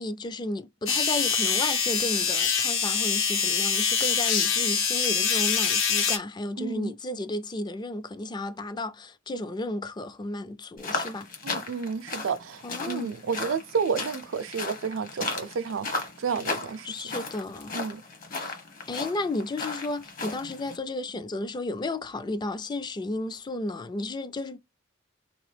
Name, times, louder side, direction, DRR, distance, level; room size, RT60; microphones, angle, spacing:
voice 1, 0.0-11.3 12.6-13.1 16.8-17.8 18.3-18.6 18.9-24.6, left 2 dB, 20° left, 0.3 m, -33 dB
sound 1, 0.9-6.2, left 6 dB, 80° left, 0.8 m, -25 dB
voice 2, 6.6-6.9 11.4-16.9 17.7-18.0, right 6 dB, 90° right, 0.4 m, -31 dB
sound 2, 10.8-20.8, left 3 dB, 45° left, 1.0 m, -36 dB
2.9 x 2.9 x 3.2 m
head